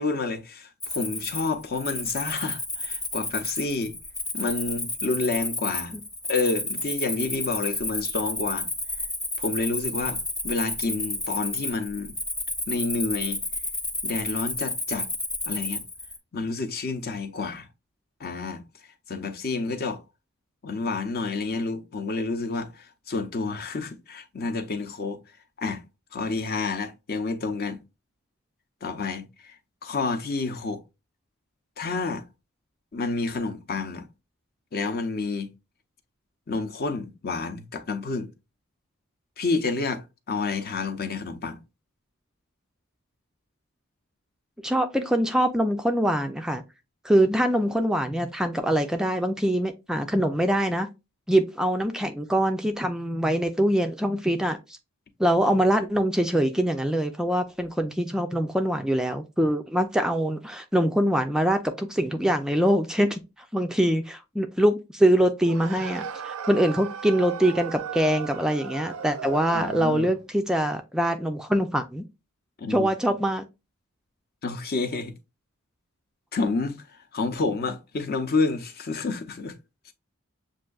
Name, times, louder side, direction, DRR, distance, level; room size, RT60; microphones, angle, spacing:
voice 1, 0.0-3.9 4.3-6.0 6.3-8.7 9.4-12.2 12.7-13.4 14.0-15.1 15.5-15.8 16.3-17.7 18.2-18.6 19.1-20.0 20.6-25.2 25.6-25.8 26.1-27.8 28.8-30.8 31.8-32.3 32.9-34.1 34.7-35.5 36.5-38.3 39.4-41.6 69.5-70.1 72.6-72.9 74.4-75.1 76.3-79.5, left 3 dB, 45° left, 0.6 m, -29 dB
Cricket, 0.8-16.2, left 2 dB, 15° left, 0.8 m, -31 dB
voice 2, 44.6-46.6 47.0-50.9 51.3-54.8 55.2-63.2 63.5-72.0 72.7-73.4, right 1 dB, 5° right, 0.3 m, -24 dB
sound 1, 65.4-70.3, right 6 dB, 85° right, 0.5 m, -36 dB
7.2 x 2.5 x 2.3 m
head